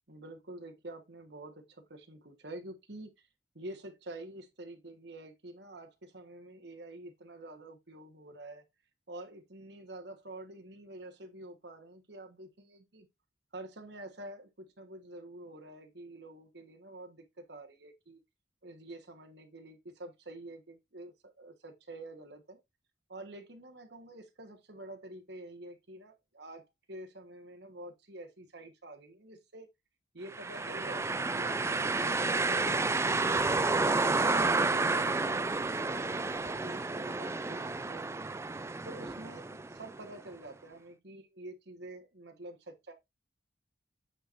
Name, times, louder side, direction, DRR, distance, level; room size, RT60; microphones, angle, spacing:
voice 1, 0.1-3.3 3.5-8.6 9.1-13.1 13.5-18.2 18.6-22.6 23.1-29.7 30.1-33.8 34.2-38.3 38.8-42.9, right 1 dB, 60° right, 1.4 m, -48 dB
sound 1, 30.3-40.1, right 3 dB, 15° right, 0.3 m, -30 dB
8.7 x 4.5 x 2.6 m
head